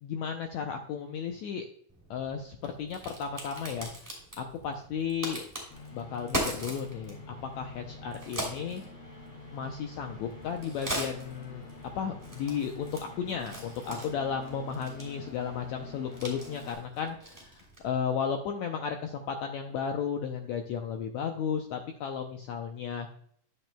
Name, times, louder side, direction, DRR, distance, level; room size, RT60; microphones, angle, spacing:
voice 1, 0.0-1.6 2.1-3.9 4.4-5.4 5.9-8.8 9.5-11.7 11.9-23.1, left 7 dB, 85° left, 4 dB, 1.6 m, -34 dB
Crack, 1.9-18.0, right 1 dB, 5° right, 2.4 m, -41 dB
sound 1, 5.7-16.7, left 3 dB, 60° left, 4.4 m, -47 dB
11.0 x 7.6 x 2.2 m, 0.63 s
omnidirectional pair, 3.9 m